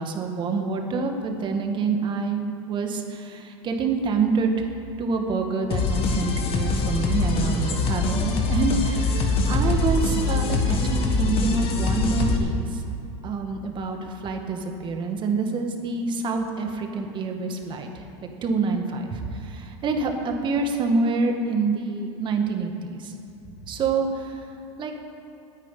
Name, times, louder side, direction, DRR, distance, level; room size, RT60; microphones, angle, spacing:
voice 1, 0.0-4.5 5.0-12.8 13.2-23.1 23.7-24.4 24.8-24.9, right 4 dB, 30° right, 4 dB, 1.8 m, -27 dB
sound 1, 5.7-12.4, left 3 dB, 35° left, 1.8 m, -23 dB
9.8 x 9.1 x 10.0 m, 2.9 s
supercardioid pair, 125°, 16 cm